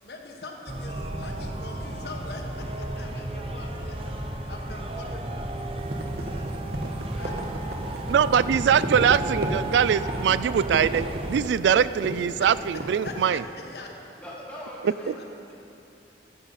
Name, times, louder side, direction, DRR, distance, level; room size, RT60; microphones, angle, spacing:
voice 1, 0.0-4.2 4.5-5.6 7.1-7.3 7.7-7.8 12.4-12.7 13.0-13.9 14.8-15.5, left 2 dB, 70° left, 1 dB, 1.5 m, -42 dB
sound 1, 0.7-11.4, right 1 dB, 30° right, 0.7 m, -34 dB
sound 2, 5.8-13.2, right 1 dB, 60° right, 1.3 m, -33 dB
voice 2, 8.1-13.4, right 8 dB, 90° right, 17 dB, 0.3 m, -22 dB
voice 3, 14.2-15.1, equal, 10° left, -6 dB, 2.1 m, -40 dB
13.5 x 13.0 x 4.2 m, 2.7 s
head